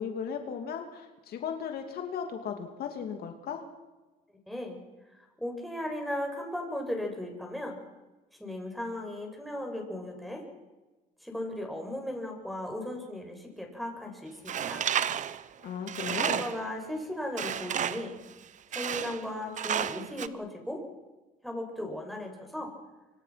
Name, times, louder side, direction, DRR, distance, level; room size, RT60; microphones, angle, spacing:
voice 1, 0.0-3.6 15.6-16.4, left 7 dB, 65° left, 5 dB, 2.8 m, -36 dB
voice 2, 4.5-4.8 5.1-7.8 8.4-10.4 11.2-14.9 16.2-18.2 18.7-20.8 21.4-22.7, left 1 dB, ahead, 1 dB, 6.9 m, -36 dB
Tools, 14.5-16.7 17.4-18.1 18.7-19.3 19.6-20.3, right 9 dB, 45° right, 1.0 m, -31 dB
25.5 x 25.0 x 6.0 m, 1.2 s
cardioid pair, 110°, 17 cm